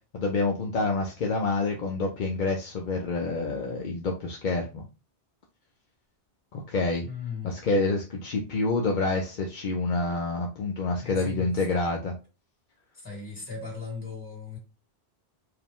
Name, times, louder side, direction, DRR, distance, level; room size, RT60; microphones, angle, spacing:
voice 1, 0.1-4.8 6.5-7.1 7.4-12.1, left 3 dB, 50° left, 0.7 m, -27 dB
voice 2, 7.0-7.5 11.0-11.8 12.9-14.6, left 5 dB, 35° left, 2.3 m, -38 dB
4.8 x 2.2 x 3.5 m
omnidirectional pair, 1.1 m